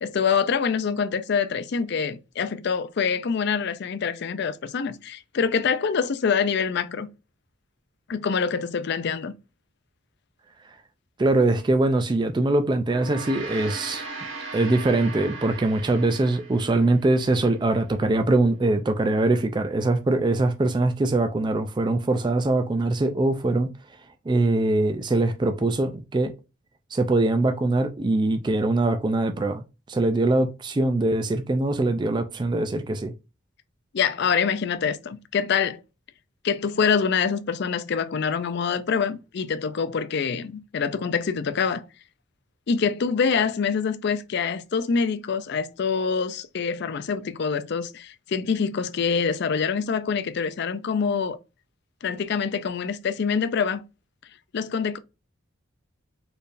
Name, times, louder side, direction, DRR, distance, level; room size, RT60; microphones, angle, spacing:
voice 1, 0.0-7.1 8.1-9.3 33.9-35.8 36.4-41.8 42.7-51.4 52.0-53.8 54.5-55.0, left 6 dB, 55° left, 0.4 m, -25 dB
voice 2, 11.2-14.0 14.5-23.7 24.3-26.3 26.9-33.1, right 2 dB, 20° right, 0.3 m, -22 dB
Gong, 12.8-17.4, right 3 dB, 60° right, 1.2 m, -38 dB
4.4 x 3.3 x 2.5 m
head